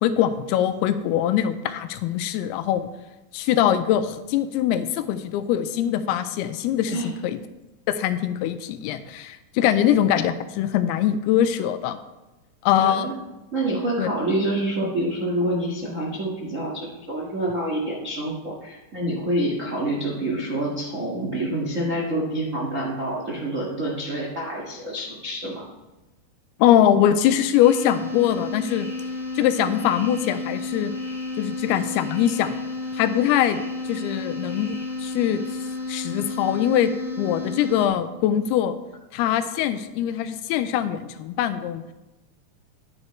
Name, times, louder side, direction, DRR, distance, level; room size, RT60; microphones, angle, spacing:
voice 1, 0.0-2.9 3.3-7.4 7.9-12.0 12.6-13.1 14.0-14.1 26.6-28.9 29.4-30.9 31.4-32.6 32.9-33.6 33.9-35.4 35.9-36.9 37.2-38.7 39.1-41.8, left 10 dB, 85° left, 10 dB, 2.6 m, -22 dB
voice 2, 12.8-13.1 13.5-25.6, right 1 dB, 65° right, -3 dB, 0.7 m, -27 dB
sound 1, 27.6-37.9, left 3 dB, 55° left, 0.8 m, -32 dB
10.5 x 9.7 x 3.2 m, 1.0 s
omnidirectional pair, 4.6 m